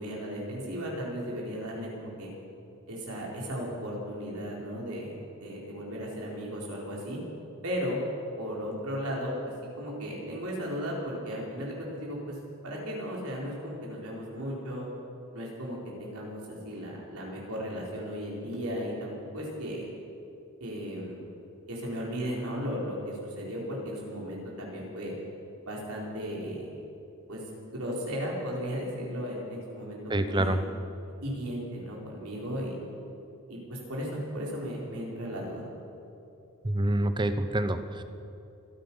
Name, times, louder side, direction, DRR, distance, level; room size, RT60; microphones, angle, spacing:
voice 1, 0.0-2.3 2.9-5.1 5.4-7.2 7.6-8.0 8.4-9.3 9.8-12.4 12.6-14.9 15.3-19.9 20.6-21.2 21.7-25.1 25.6-26.7 27.3-27.4 27.7-30.5 31.2-32.8 33.5-35.6, equal, 85° right, -3 dB, 4.4 m, -35 dB
voice 2, 30.1-30.6 36.6-38.0, right 1 dB, 20° right, 10 dB, 0.7 m, -27 dB
26.5 x 9.3 x 5.7 m, 2.7 s
head